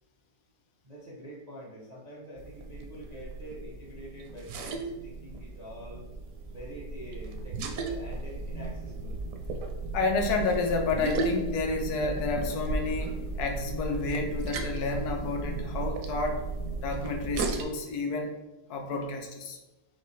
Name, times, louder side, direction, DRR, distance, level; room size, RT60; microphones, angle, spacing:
voice 1, 0.8-6.0 6.5-9.2, right 1 dB, 45° right, -6 dB, 0.5 m, -45 dB
sound 1, 2.4-17.6, right 3 dB, 70° right, 0.8 m, -35 dB
voice 2, 9.9-16.4 16.8-18.4 18.7-19.6, left 3 dB, 70° left, 3 dB, 1.1 m, -30 dB
5.7 x 2.3 x 3.1 m, 1.0 s
omnidirectional pair, 1.8 m